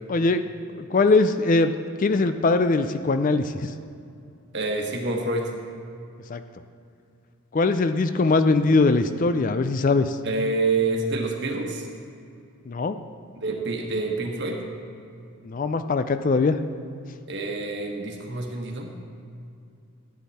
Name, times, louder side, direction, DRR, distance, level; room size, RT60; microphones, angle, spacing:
voice 1, 0.1-0.5 0.8-3.7 6.3-6.4 7.5-10.2 12.7-13.0 15.4-16.6, left 3 dB, 35° left, 10 dB, 0.4 m, -21 dB
voice 2, 4.5-5.5 10.2-11.9 13.4-14.6 17.3-18.9, right 3 dB, 50° right, 1 dB, 1.4 m, -27 dB
13.5 x 9.4 x 4.2 m, 2.6 s
head